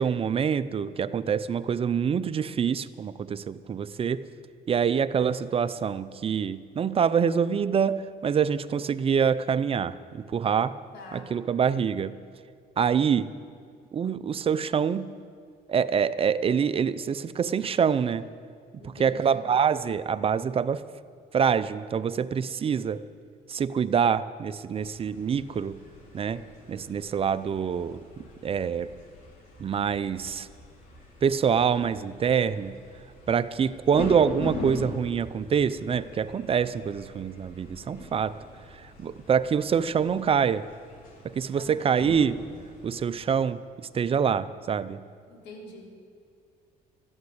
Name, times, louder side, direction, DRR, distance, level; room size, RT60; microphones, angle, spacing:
voice 1, 0.0-4.3 4.7-10.8 11.1-12.2 12.8-13.3 13.9-15.1 15.7-18.2 19.0-20.9 21.3-23.1 23.5-25.8 26.1-28.9 29.6-30.5 31.2-32.8 33.3-38.4 38.7-40.7 41.2-42.4 42.8-45.0, right 7 dB, 35° right, 14 dB, 0.5 m, -26 dB
voice 2, 10.9-11.3 18.7-19.5 41.5-42.0 45.3-46.0, left 2 dB, 85° left, -2 dB, 4.0 m, -45 dB
sound 1, 24.7-43.2, left 2 dB, 55° left, 4.1 m, -42 dB
14.5 x 11.0 x 8.0 m, 2.2 s
cardioid pair, 110°, 17 cm